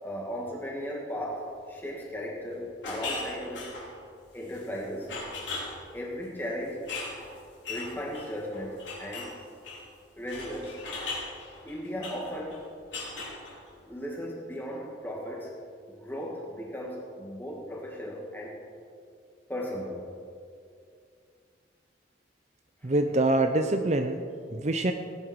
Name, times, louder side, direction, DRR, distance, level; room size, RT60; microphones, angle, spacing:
voice 1, 0.0-3.8 4.3-5.1 5.9-6.9 7.7-9.4 10.2-10.8 11.6-12.7 13.8-15.6 15.9-18.6 19.5-20.1 22.8-22.9, equal, 10° left, -2 dB, 2.3 m, -36 dB
sound 1, 2.8-3.9 4.5-4.8 5.1-5.8 6.9-9.4 9.6-9.9 10.3-12.6 12.9-13.7, left 3 dB, 85° left, 3.8 m, -38 dB
voice 2, 22.8-24.2 24.5-24.9, right 2 dB, 40° right, 7 dB, 0.6 m, -25 dB
18.0 x 9.9 x 4.7 m, 2.3 s
head